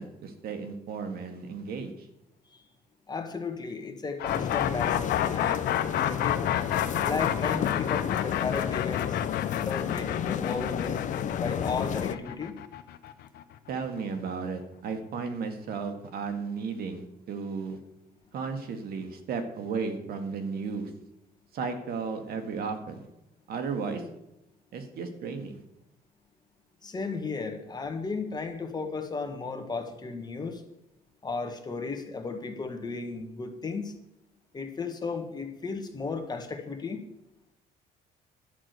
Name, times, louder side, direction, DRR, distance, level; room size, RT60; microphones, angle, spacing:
voice 1, 0.0-2.1 13.7-17.8 18.3-20.9 21.5-23.1 23.5-24.0 24.7-25.6, right 5 dB, 65° right, 7 dB, 1.7 m, -34 dB
voice 2, 3.1-5.6 5.9-6.4 7.0-9.2 9.5-11.1 11.4-12.6 26.8-30.6 31.2-33.9 34.5-37.0, left 4 dB, 25° left, 5 dB, 1.6 m, -34 dB
sound 1, 4.2-14.0, left 12 dB, 70° left, 0.9 m, -30 dB
sound 2, 4.3-12.2, left 9 dB, 45° left, 0.6 m, -31 dB
11.0 x 6.2 x 8.0 m, 0.88 s
cardioid pair, 110°, 17 cm